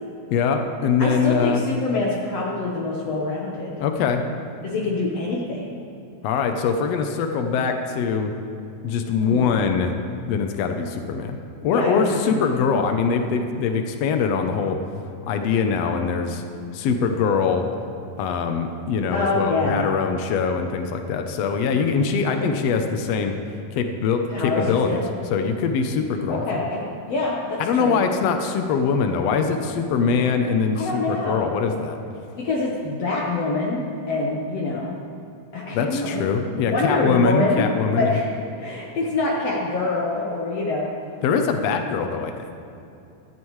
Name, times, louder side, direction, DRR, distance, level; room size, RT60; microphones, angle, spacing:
voice 1, 0.3-1.6 3.8-4.2 6.2-8.3 8.8-9.9 10.3-11.4 11.6-14.8 15.3-16.4 16.7-17.7 18.2-23.3 23.7-25.0 25.3-26.6 27.6-32.0 35.7-38.1 41.2-42.4, left 5 dB, 85° left, 6 dB, 1.4 m, -23 dB
voice 2, 1.0-3.7 4.6-5.9 9.2-9.6 11.7-12.4 19.1-19.9 24.3-25.1 26.3-28.1 30.8-31.4 32.4-34.9 35.5-36.2 36.7-37.7 37.9-38.3 38.6-40.9, left 2 dB, 60° left, -4 dB, 1.9 m, -25 dB
15.5 x 14.0 x 3.2 m, 2.7 s
omnidirectional pair, 3.9 m